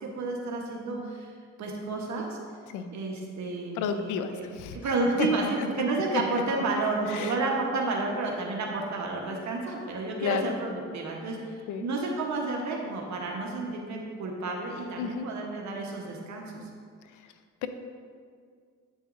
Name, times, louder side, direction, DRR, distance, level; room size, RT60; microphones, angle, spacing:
voice 1, 0.0-1.3 1.6-2.4 2.9-4.4 4.7-16.7, right 3 dB, 70° right, 0 dB, 1.1 m, -31 dB
voice 2, 3.7-4.9 5.2-5.3 5.6-5.7 6.1-6.2 7.1-7.4 10.2-10.6 11.7-11.9 15.0-15.3 17.6-17.7, left 8 dB, 90° left, 8 dB, 0.6 m, -31 dB
8.0 x 8.0 x 2.6 m, 2.1 s
cardioid pair, 90°, 30 cm